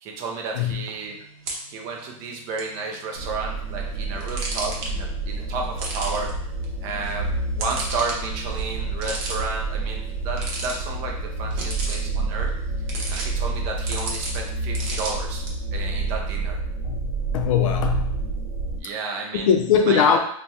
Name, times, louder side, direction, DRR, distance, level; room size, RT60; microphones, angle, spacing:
voice 1, 0.0-1.2 1.7-6.3 6.8-7.3 7.6-12.5 13.1-15.4 15.7-16.6 18.8-19.5 19.9-20.2, right 4 dB, 25° right, 1 dB, 0.4 m, -32 dB
sound 1, 0.7-15.5, right 2 dB, 45° right, 0.7 m, -37 dB
sound 2, 3.1-18.8, right 3 dB, 90° right, 0.7 m, -29 dB
voice 2, 16.8-18.3 19.3-20.2, left 7 dB, 65° left, 6 dB, 0.4 m, -21 dB
3.3 x 2.1 x 2.8 m, 0.68 s
supercardioid pair, 175°, 18 cm